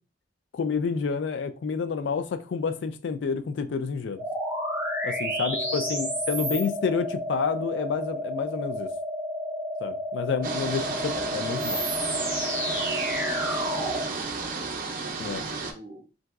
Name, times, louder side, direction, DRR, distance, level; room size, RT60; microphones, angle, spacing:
voice 1, 0.5-4.2 5.0-8.9 9.8-11.8 15.2-15.4, left 5 dB, 65° left, 0.3 m, -29 dB
sound 1, 4.2-14.1, equal, 10° right, 0.8 m, -30 dB
voice 2, 5.4-6.2 6.5-6.7 10.8-11.3 13.5-14.6 15.2-16.0, equal, 30° right, 1.5 m, -46 dB
sound 2, 10.4-15.7, right 4 dB, 50° right, 0.6 m, -32 dB
3.8 x 2.6 x 2.3 m
head